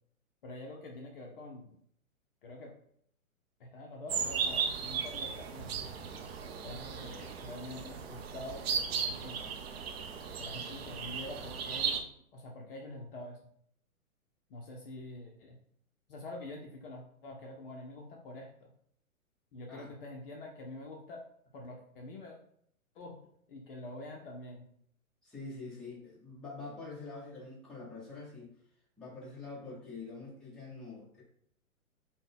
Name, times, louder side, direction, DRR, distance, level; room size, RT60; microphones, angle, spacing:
voice 1, 0.4-1.8 2.4-2.7 3.6-5.8 6.6-9.5 10.4-12.0 12.3-13.4 14.5-15.6 16.1-18.7 19.5-21.2 21.5-22.4 22.9-23.2 23.5-24.7, left 2 dB, 40° left, 0 dB, 0.6 m, -46 dB
sound 1, 4.1-12.0, right 6 dB, 45° right, 0.5 m, -36 dB
voice 2, 25.2-28.5 29.0-31.2, left 3 dB, ahead, -7 dB, 0.8 m, -45 dB
3.8 x 2.2 x 3.5 m, 0.66 s
hypercardioid pair, 125°, 42 cm